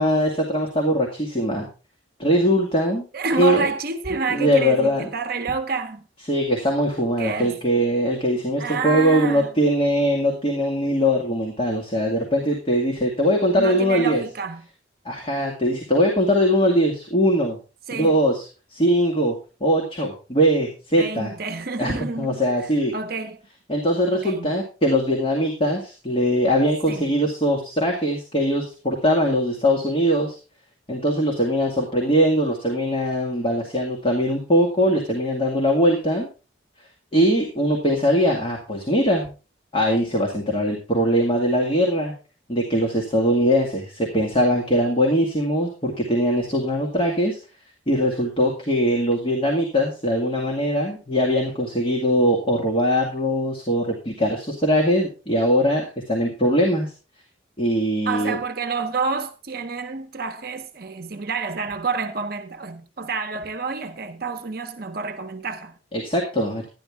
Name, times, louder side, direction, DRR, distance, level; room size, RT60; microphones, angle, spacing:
voice 1, 0.0-1.7 2.2-3.0 3.4-3.7 4.3-5.1 6.3-14.2 15.1-17.6 17.9-18.5 18.7-19.4 19.6-21.3 21.8-22.9 23.7-30.4 30.9-36.3 37.1-39.3 39.7-42.1 42.5-47.4 47.9-56.9 57.6-58.4 65.9-66.7, equal, 30° left, 2.2 m, -21 dB
voice 2, 3.1-6.0 7.2-7.6 8.6-9.5 13.5-14.7 17.9-18.2 21.0-22.4 22.9-23.4 24.1-24.5 26.9-27.1 58.0-65.8, right 4 dB, 50° right, 0.8 m, -28 dB
12.5 x 10.5 x 3.6 m
head